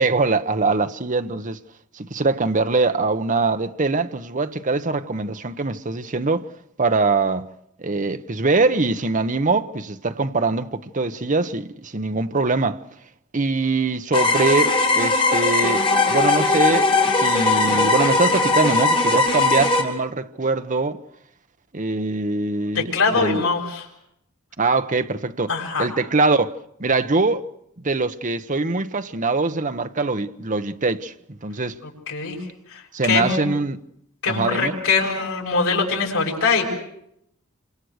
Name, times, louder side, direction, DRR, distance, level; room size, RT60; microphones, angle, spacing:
voice 1, 0.0-1.6 1.9-6.5 6.8-7.5 7.8-12.8 13.3-21.0 21.7-23.4 24.6-25.5 25.8-26.5 26.8-27.5 27.8-31.8 32.9-33.8 34.3-34.8, right 3 dB, 35° right, 1.1 m, -23 dB
sound 1, 14.1-19.8, left 3 dB, 25° left, 4.3 m, -19 dB
voice 2, 22.7-23.8 25.5-25.9 32.1-32.4 32.7-33.4 34.2-36.7, left 4 dB, 80° left, 6.8 m, -22 dB
27.5 x 25.5 x 6.6 m
head